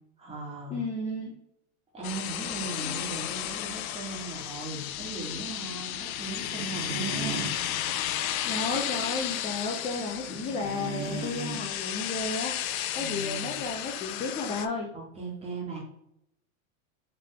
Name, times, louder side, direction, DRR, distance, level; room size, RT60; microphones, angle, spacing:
voice 1, 0.2-0.8 1.9-7.4 13.0-13.6 14.9-15.8, right 3 dB, 15° right, -3 dB, 1.6 m, -38 dB
voice 2, 0.7-1.3 2.8-3.0 8.4-12.5 12.9-14.9, left 3 dB, 15° left, 0 dB, 0.5 m, -33 dB
sound 1, 2.0-14.7, left 11 dB, 75° left, 0.6 m, -33 dB
sound 2, 6.5-7.6 10.3-11.6, right 7 dB, 75° right, 0.9 m, -37 dB
3.9 x 3.5 x 3.3 m, 0.78 s
supercardioid pair, 130°, 43 cm